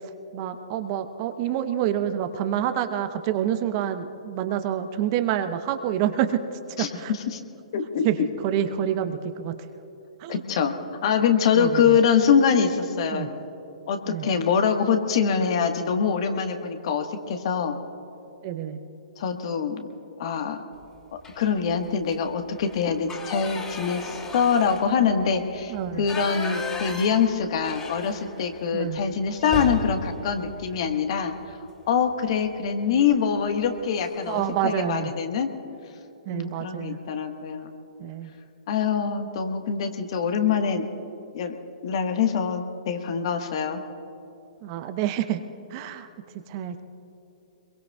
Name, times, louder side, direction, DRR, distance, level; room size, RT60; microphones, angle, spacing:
voice 1, 0.3-7.1 8.0-8.2 8.4-9.5 10.2-10.4 11.5-12.0 13.1-13.3 14.1-14.3 18.4-18.8 25.7-26.1 28.7-29.0 34.3-35.1 36.3-37.0 38.0-38.3 44.6-45.4 45.7-46.1 46.5-46.8, right 10 dB, 40° right, 9 dB, 0.9 m, -27 dB
voice 2, 6.8-7.4 7.7-8.1 10.3-10.7 11.0-13.3 13.9-17.8 19.2-19.9 20.2-20.6 21.4-31.6 31.9-35.5 36.3-37.7 38.7-40.8 41.3-41.5 41.8-43.8, left 6 dB, 50° left, 6 dB, 1.4 m, -24 dB
sound 1, 21.2-21.6 22.0-22.2 22.5-28.6 28.9-29.0 29.4-31.5 32.9-33.1 33.5-33.7 34.0-34.6, left 3 dB, 20° left, 2.8 m, -36 dB
26.0 x 22.5 x 2.4 m, 2.9 s
figure-of-eight pair, 120°, 4 cm